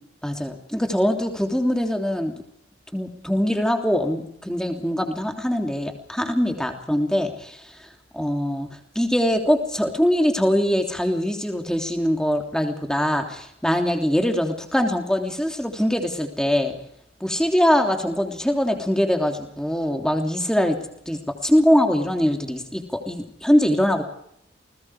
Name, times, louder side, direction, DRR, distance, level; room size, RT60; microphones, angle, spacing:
voice 1, 0.2-2.4 2.9-7.9 8.1-8.7 8.9-16.7 17.2-20.8 21.1-24.0, equal, 5° left, 4 dB, 3.2 m, -22 dB
29.5 x 20.5 x 5.0 m, 0.71 s
head